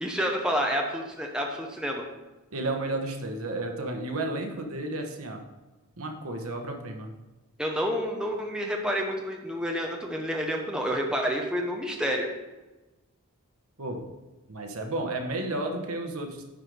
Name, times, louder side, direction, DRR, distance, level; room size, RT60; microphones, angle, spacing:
voice 1, 0.0-2.0 7.6-12.3, equal, 5° right, 1 dB, 0.8 m, -29 dB
voice 2, 2.5-5.4 6.0-7.1 13.8-14.0 14.5-16.4, right 2 dB, 70° right, 4 dB, 1.2 m, -32 dB
10.0 x 4.8 x 5.1 m, 1.1 s
head